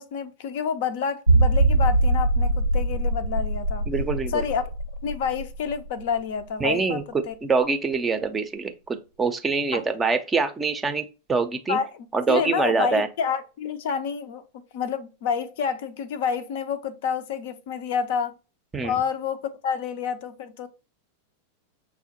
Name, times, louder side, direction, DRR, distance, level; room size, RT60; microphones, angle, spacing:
voice 1, 0.0-3.8 4.3-4.7 5.0-7.3 9.7-9.8 11.7-11.9 12.3-14.4 14.7-18.3 18.8-20.7, left 7 dB, 50° left, 0.4 m, -28 dB
sound 1, 1.3-6.7 7.0-7.1 7.6-7.7, right 2 dB, 80° right, 0.4 m, -23 dB
voice 2, 3.9-4.4 6.6-7.0 7.4-11.8 12.1-13.1 18.7-19.0, right 4 dB, 15° right, 0.5 m, -25 dB
6.0 x 2.1 x 2.8 m
figure-of-eight pair, 90°, 0 cm